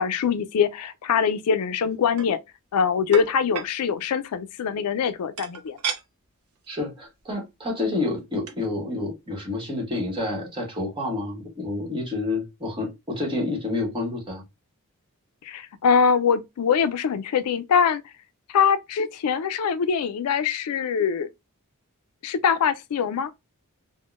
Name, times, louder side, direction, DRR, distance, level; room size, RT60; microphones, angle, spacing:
voice 1, 0.0-2.4 2.7-5.8 15.4-18.0 18.5-21.3 22.2-23.3, left 6 dB, 80° left, 0.4 m, -23 dB
sound 1, 1.9-2.3 3.1-3.7 5.4-6.0 6.6-6.7 7.0-7.2 8.2-8.3 8.5-8.7, right 7 dB, 90° right, 0.5 m, -32 dB
voice 2, 6.7-14.4, left 2 dB, 20° right, 1.2 m, -29 dB
3.6 x 2.1 x 2.3 m
head